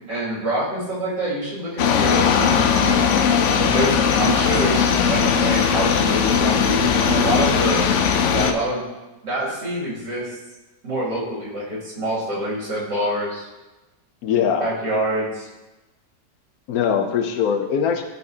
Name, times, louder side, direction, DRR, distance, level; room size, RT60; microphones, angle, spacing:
voice 1, 0.1-3.1 3.6-7.9 8.3-8.8 9.2-10.4 10.8-13.5 14.6-15.5, right 1 dB, 90° right, -8 dB, 3.2 m, -26 dB
sound 1, 1.8-8.5, left 6 dB, 85° left, 0.6 m, -19 dB
voice 2, 14.2-14.7 16.7-18.0, left 7 dB, 70° left, 6 dB, 1.0 m, -21 dB
10.5 x 4.2 x 2.8 m, 1.1 s
omnidirectional pair, 1.8 m